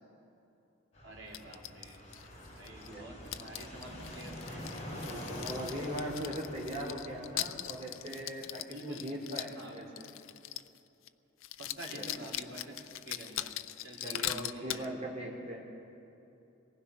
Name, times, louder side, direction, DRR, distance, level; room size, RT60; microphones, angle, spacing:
Fixed-wing aircraft airplane, 0.9-7.8, left 1 dB, 35° left, 5.8 m, -46 dB
voice 1, 1.0-2.0 2.6-5.2 5.6-5.8 8.7-9.1 9.6-9.8 11.6-12.8 13.1-13.5 13.8-14.9, right 1 dB, 85° right, -1 dB, 3.6 m, -48 dB
sound 1, 1.3-2.9 3.3-10.8 11.1-11.2 11.4-14.9, left 13 dB, 85° left, 0.6 m, -41 dB
voice 2, 5.0-10.0 12.0-12.1 14.0-15.6, equal, 35° right, -2 dB, 3.3 m, -40 dB
25.5 x 19.0 x 5.7 m, 2.9 s
head